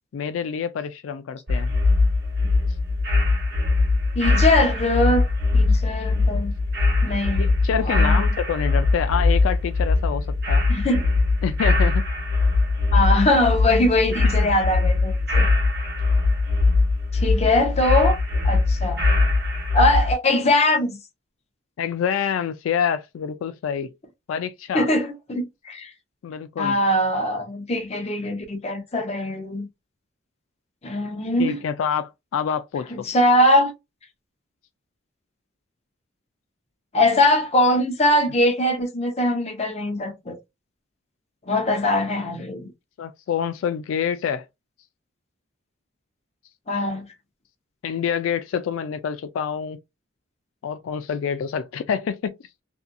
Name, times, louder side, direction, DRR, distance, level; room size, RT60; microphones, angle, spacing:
voice 1, 0.1-1.7 7.4-10.6 11.4-12.0 14.3-14.5 21.8-23.9 24.3-24.9 26.2-26.8 31.4-32.9 43.0-44.5 47.8-49.8 50.6-52.4, left 7 dB, 80° left, 0.3 m, -27 dB
sound 1, 1.5-20.1, left 3 dB, 55° right, 1.0 m, -21 dB
voice 2, 4.2-5.2 5.5-6.5 7.0-7.5 7.8-8.2 10.7-11.0 12.9-15.5 17.1-18.2 18.4-19.1 19.7-21.0 24.7-25.9 26.6-29.7 30.8-31.6 32.9-33.7 36.9-40.4 41.5-42.7 46.7-47.1, left 1 dB, 35° left, 0.7 m, -21 dB
2.7 x 2.4 x 2.3 m
head